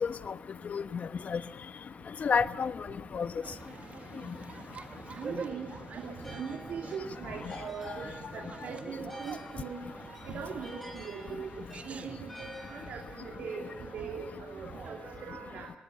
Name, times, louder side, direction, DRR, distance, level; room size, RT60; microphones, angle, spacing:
voice 1, 0.0-0.3 0.7-1.4 2.2-2.9 3.1-3.3 4.3-4.4 7.5-7.6, left 6 dB, 50° left, 12 dB, 1.1 m, -30 dB
sound 1, 3.4-15.2, right 5 dB, 45° right, 1.5 m, -46 dB
sound 2, 5.0-13.9, left 1 dB, 5° left, 5.8 m, -52 dB
voice 2, 5.1-8.1 8.3-9.8 10.3-15.7, right 6 dB, 70° right, 1 dB, 2.9 m, -41 dB
25.0 x 20.0 x 7.0 m, 1.0 s
supercardioid pair, 65°, 3 cm